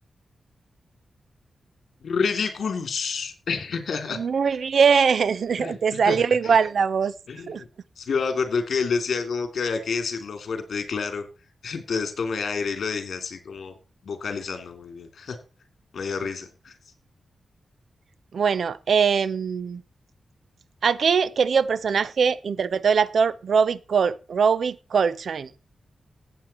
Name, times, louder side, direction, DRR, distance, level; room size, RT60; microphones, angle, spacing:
voice 1, 2.0-4.2 5.6-6.2 6.4-6.6 7.3-7.7 8.0-11.3 11.6-13.7 14.0-15.4 15.9-16.7, left 5 dB, 70° left, 3.2 m, -28 dB
voice 2, 4.1-7.1 7.5-7.6 18.3-19.8 20.8-25.5, right 6 dB, 70° right, 0.7 m, -22 dB
16.0 x 8.5 x 4.4 m
wide cardioid pair, 125°, 0 cm